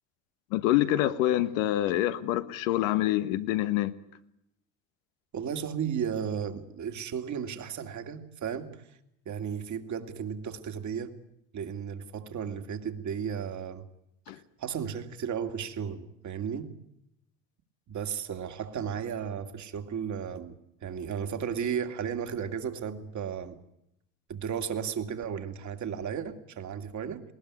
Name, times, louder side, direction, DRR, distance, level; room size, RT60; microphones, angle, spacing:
voice 1, 0.5-3.9 14.3-14.4, left 14 dB, 85° left, 1.3 m, -26 dB
voice 2, 5.3-8.8 9.3-11.1 11.5-13.9 14.6-16.8 17.9-20.5 20.8-23.6 24.3-27.2, right 7 dB, 50° right, 2.3 m, -34 dB
20.0 x 19.0 x 9.7 m
supercardioid pair, 75°, 38 cm